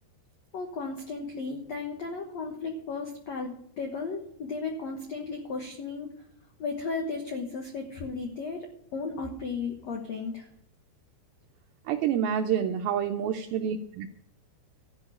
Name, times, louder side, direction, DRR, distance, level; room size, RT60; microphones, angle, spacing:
voice 1, 0.5-6.1 6.6-10.5, left 4 dB, 75° left, 3 dB, 1.5 m, -35 dB
voice 2, 11.9-14.1, right 8 dB, 85° right, 5 dB, 2.1 m, -28 dB
13.0 x 6.3 x 9.6 m, 0.72 s
omnidirectional pair, 5.0 m